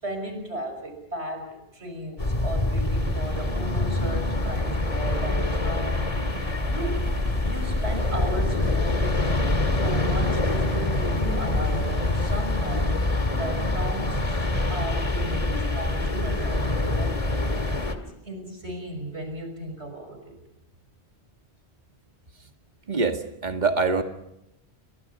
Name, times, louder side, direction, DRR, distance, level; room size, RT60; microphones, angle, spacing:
voice 1, 0.0-7.1 7.4-9.3 9.7-13.0 13.3-20.4, equal, 85° right, 6 dB, 6.0 m, -35 dB
sound 1, 2.2-17.9, left 2 dB, 35° left, 2.1 m, -25 dB
sound 2, 2.8-8.3, right 2 dB, 65° right, 2.5 m, -40 dB
sound 3, 7.0-13.0, left 1 dB, 80° left, 4.8 m, -36 dB
voice 2, 22.9-24.0, right 4 dB, 40° right, 5 dB, 2.2 m, -24 dB
30.0 x 23.5 x 5.6 m, 0.82 s
omnidirectional pair, 1.1 m